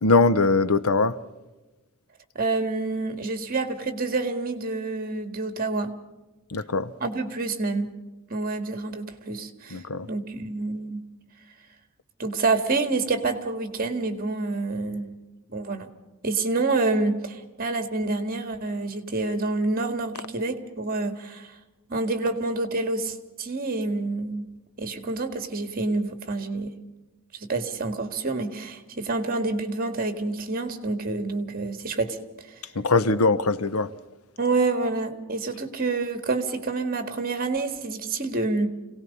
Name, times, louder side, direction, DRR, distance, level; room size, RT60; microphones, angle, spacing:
voice 1, 0.0-1.2 6.5-6.9 9.7-10.1 32.7-33.9, left 3 dB, 75° left, 0.9 m, -21 dB
voice 2, 2.4-5.9 7.0-7.9 8.3-9.8 10.1-11.1 12.2-15.1 15.5-15.9 16.2-21.5 21.9-24.5 24.8-26.7 27.5-32.2 34.4-38.7, right 3 dB, 40° right, 2.0 m, -27 dB
26.5 x 18.0 x 5.5 m
head